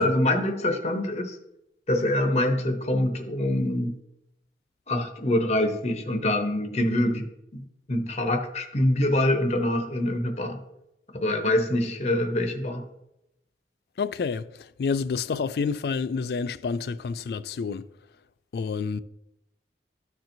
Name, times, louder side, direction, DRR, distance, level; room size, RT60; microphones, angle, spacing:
voice 1, 0.0-1.3 1.9-3.9 4.9-7.3 7.5-10.6 11.1-12.8, left 1 dB, 35° left, 0.8 m, -25 dB
voice 2, 14.0-14.5 14.8-17.9 18.5-19.0, left 5 dB, 60° left, 0.3 m, -28 dB
13.0 x 4.4 x 2.6 m
head